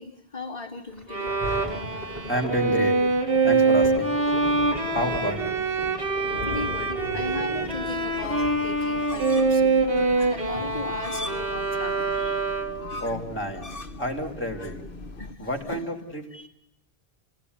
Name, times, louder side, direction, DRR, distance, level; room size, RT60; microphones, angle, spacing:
voice 1, 0.0-1.4 6.4-9.9 10.3-12.5 15.1-15.8 16.3-16.5, left 4 dB, 35° left, -8 dB, 2.5 m, -37 dB
Thunder, 0.9-11.9 12.6-12.7, left 1 dB, 15° right, 6.1 m, -38 dB
Bowed string instrument, 1.1-12.9, right 3 dB, 65° right, 2.8 m, -25 dB
voice 2, 2.3-3.0 3.4-4.1 4.8-5.6 13.0-13.7 14.0-14.8 15.4-16.2, equal, 10° left, 2 dB, 3.5 m, -29 dB
sound 1, 7.6-15.3, left 2 dB, 60° left, 1.6 m, -40 dB
29.0 x 18.5 x 9.8 m, 0.79 s
omnidirectional pair, 1.0 m